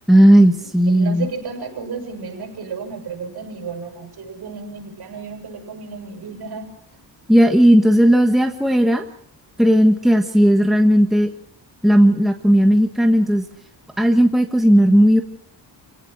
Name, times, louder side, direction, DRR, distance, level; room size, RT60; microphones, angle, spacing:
voice 1, 0.1-1.3 7.3-9.0 9.6-11.3 11.8-13.4 14.0-15.2, equal, ahead, 5 dB, 1.4 m, -14 dB
voice 2, 0.8-6.7, right 5 dB, 60° right, 3 dB, 7.8 m, -32 dB
28.5 x 17.5 x 6.2 m, 0.64 s
cardioid pair, 130°, 43 cm